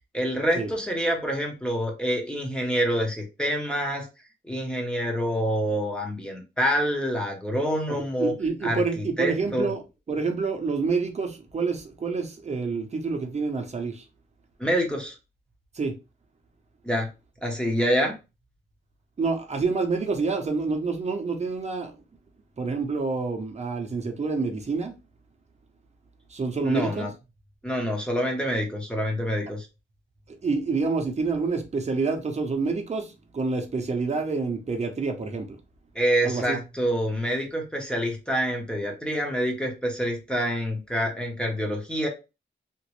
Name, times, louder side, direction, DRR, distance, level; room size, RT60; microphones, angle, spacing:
voice 1, 0.1-4.1 4.4-8.3 8.6-9.7 14.6-15.2 16.8-17.1 17.4-18.1 26.6-27.1 27.6-29.7 35.9-42.1, equal, 5° left, 0.7 m, -27 dB
voice 2, 7.9-9.8 10.1-14.1 15.7-16.0 19.2-22.0 22.6-24.9 26.3-27.1 30.3-35.6 36.2-36.6, right 4 dB, 35° right, 0.6 m, -28 dB
2.9 x 2.5 x 3.0 m
wide cardioid pair, 160°, 21 cm